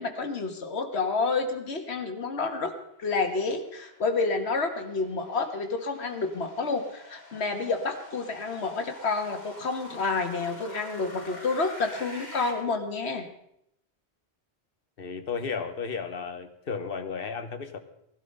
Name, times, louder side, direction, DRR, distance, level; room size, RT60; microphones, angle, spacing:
voice 1, 0.0-2.7 3.0-13.3, left 4 dB, 80° left, 6 dB, 1.8 m, -29 dB
sound 1, 2.9-12.5, left 1 dB, 40° left, 3.1 m, -47 dB
voice 2, 15.0-17.8, left 5 dB, 60° left, 9 dB, 1.4 m, -34 dB
17.5 x 12.0 x 5.4 m, 0.77 s
omnidirectional pair, 1.1 m